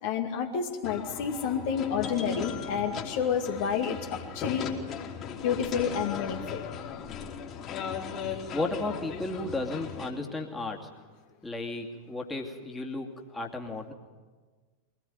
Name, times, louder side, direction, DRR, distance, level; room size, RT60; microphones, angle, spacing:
voice 1, 0.0-4.7 5.4-6.6, left 7 dB, 50° left, 3 dB, 2.2 m, -29 dB
sound 1, 0.8-10.1, left 7 dB, 30° left, 3.4 m, -37 dB
voice 2, 8.3-10.9 11.4-13.9, left 2 dB, 10° left, 0 dB, 2.6 m, -34 dB
23.5 x 18.5 x 9.5 m, 1.4 s
figure-of-eight pair, 90°, 0 cm